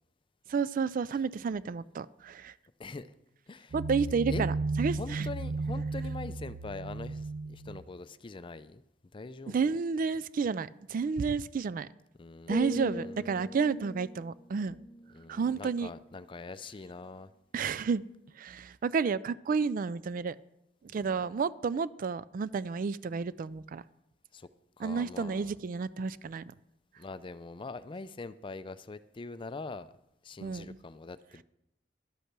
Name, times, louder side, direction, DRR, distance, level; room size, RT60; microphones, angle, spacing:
voice 1, 0.5-2.5 3.7-4.5 4.8-5.3 9.5-11.9 12.5-14.8 15.3-15.9 17.5-18.0 18.4-20.4 20.9-23.8 24.8-26.4 30.4-30.8, right 5 dB, 50° right, 18 dB, 0.3 m, -31 dB
sound 1, 3.7-7.8, right 3 dB, 80° right, 0.7 m, -34 dB
voice 2, 5.0-8.8 9.1-9.7 12.2-13.5 15.1-17.3 20.9-21.2 24.3-24.5 24.8-25.6 27.0-29.9 30.2-31.4, left 3 dB, 25° left, 14 dB, 0.4 m, -43 dB
sound 2, 12.5-16.4 16.9-17.2, left 1 dB, 5° left, 0.8 m, -42 dB
12.0 x 8.4 x 5.9 m, 0.85 s
head